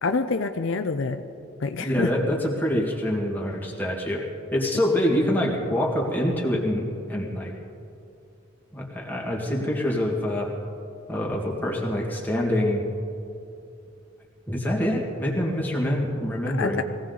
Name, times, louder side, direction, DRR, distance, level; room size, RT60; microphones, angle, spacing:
voice 1, 0.0-1.2 1.6-2.1 16.4-16.8, left 4 dB, 65° left, 8 dB, 0.6 m, -26 dB
voice 2, 1.8-6.8 7.1-7.5 8.7-10.5 11.1-12.8 14.5-16.8, left 1 dB, 10° left, -3 dB, 2.0 m, -25 dB
21.5 x 16.5 x 4.0 m, 2.6 s
head